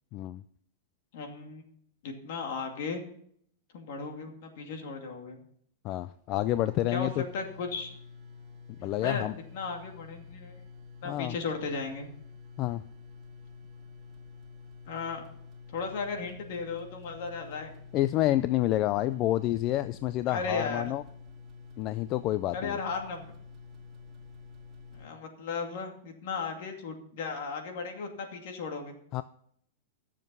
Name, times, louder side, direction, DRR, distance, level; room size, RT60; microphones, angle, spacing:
voice 1, 0.1-0.4 5.8-7.2 8.8-9.3 11.0-11.4 12.6-12.8 17.9-21.0 21.8-22.8 29.1-29.2, left 14 dB, 35° left, 14 dB, 0.3 m, -28 dB
voice 2, 1.1-1.6 2.0-3.0 3.7-5.4 6.9-7.9 9.0-9.2 9.5-10.6 11.0-12.1 14.9-15.2 15.7-17.7 20.3-20.9 22.5-23.3 24.9-29.0, left 4 dB, 60° left, 3 dB, 2.4 m, -36 dB
sound 1, 6.1-6.2 6.4-25.1, left 4 dB, 20° right, 2.3 m, -49 dB
13.5 x 7.4 x 5.4 m, 0.66 s
supercardioid pair, 155°, 0 cm